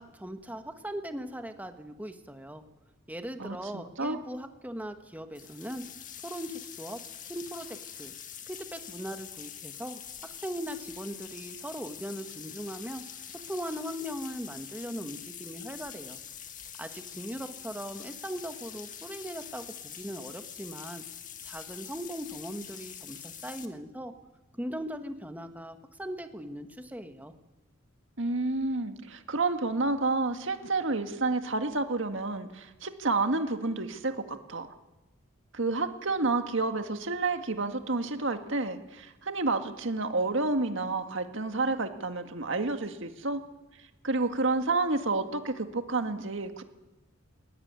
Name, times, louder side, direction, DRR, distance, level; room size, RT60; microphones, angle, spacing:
voice 1, 0.0-2.6 3.1-5.8 6.2-7.0 7.3-8.1 8.5-10.0 10.4-13.0 13.5-16.2 16.8-21.0 21.4-24.1 24.5-27.3, equal, 10° right, 7 dB, 1.6 m, -39 dB
voice 2, 3.4-4.2 28.2-34.7 35.5-43.4 44.0-46.6, right 3 dB, 65° right, 7 dB, 1.9 m, -30 dB
sound 1, 5.3-23.6, left 9 dB, 40° left, 1.9 m, -45 dB
20.0 x 20.0 x 9.7 m, 1.1 s
head